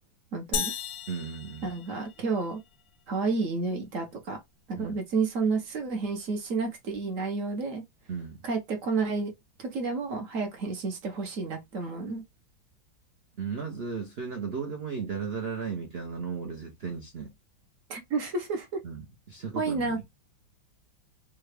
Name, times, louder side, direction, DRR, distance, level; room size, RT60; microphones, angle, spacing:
voice 1, 0.3-0.7 1.6-2.6 3.1-4.4 4.7-7.8 8.4-9.3 9.6-12.2 17.9-18.7 19.5-20.0, right 4 dB, 55° right, 1.0 m, -30 dB
sound 1, 0.5-2.5, left 7 dB, 70° left, 0.9 m, -35 dB
voice 2, 1.1-1.7 4.8-5.0 8.1-8.4 13.4-17.3 18.8-19.0 19.3-19.9, right 5 dB, 75° right, 0.5 m, -35 dB
3.7 x 2.3 x 3.2 m
omnidirectional pair, 2.1 m